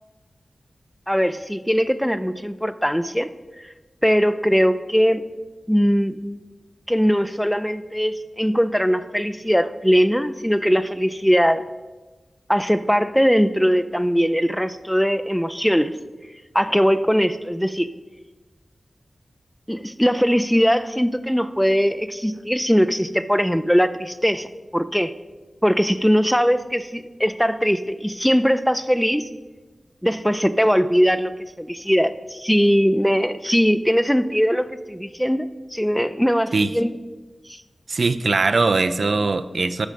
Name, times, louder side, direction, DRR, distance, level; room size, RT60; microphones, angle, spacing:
voice 1, 1.1-3.3 4.0-5.2 5.7-6.2 6.9-11.6 12.5-15.9 16.5-17.9 19.7-25.1 25.6-29.3 30.0-31.3 31.6-36.9 37.5-37.6, equal, ahead, 12 dB, 0.5 m, -20 dB
voice 2, 37.9-39.9, right 3 dB, 70° right, 11 dB, 0.5 m, -20 dB
12.0 x 6.3 x 5.3 m, 1.2 s
wide cardioid pair, 60°, 0 cm